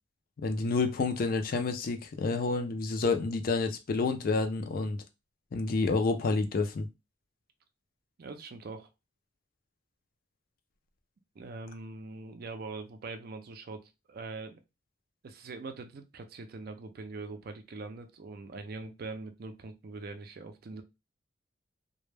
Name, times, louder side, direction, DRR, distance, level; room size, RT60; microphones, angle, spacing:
voice 1, 0.4-5.0 5.5-6.9, left 3 dB, 50° left, 0.4 m, -29 dB
voice 2, 8.2-8.9 11.4-14.6 15.2-20.8, right 3 dB, 50° right, 0.4 m, -42 dB
2.1 x 2.0 x 3.1 m
head